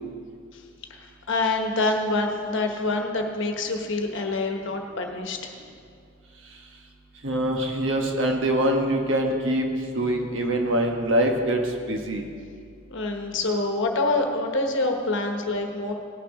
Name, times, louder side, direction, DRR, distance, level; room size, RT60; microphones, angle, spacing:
voice 1, 1.3-5.5 12.9-15.9, left 2 dB, 55° left, 4 dB, 1.2 m, -26 dB
voice 2, 7.2-11.6 11.9-12.2, right 1 dB, 60° right, 2 dB, 1.3 m, -24 dB
18.0 x 6.7 x 4.9 m, 2.3 s
head